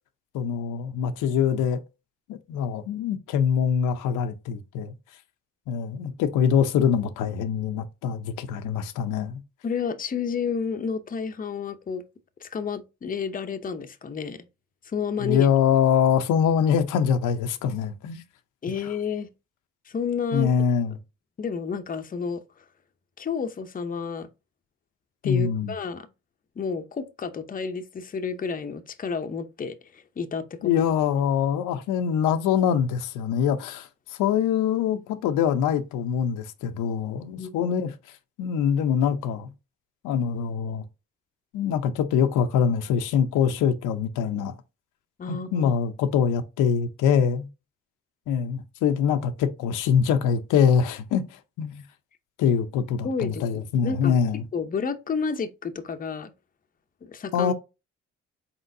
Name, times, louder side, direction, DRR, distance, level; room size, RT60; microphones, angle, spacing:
voice 1, 0.3-1.8 2.3-4.9 5.7-9.4 15.2-18.2 20.3-20.9 25.2-25.7 30.6-37.9 38.4-39.5 40.0-40.8 41.5-44.6 45.3-47.5 48.3-51.8 52.4-54.4 57.3-57.5, left 7 dB, 85° left, 0.6 m, -24 dB
voice 2, 9.6-12.0 12.4-14.5 14.9-15.5 18.6-19.3 19.9-20.5 21.4-22.4 23.2-24.3 25.2-26.1 26.6-30.7 37.3-37.7 45.2-45.7 53.0-53.4 53.8-54.2 54.5-56.3 57.0-57.5, left 5 dB, 30° left, 0.6 m, -30 dB
4.3 x 4.0 x 2.6 m
cardioid pair, 90°, 30 cm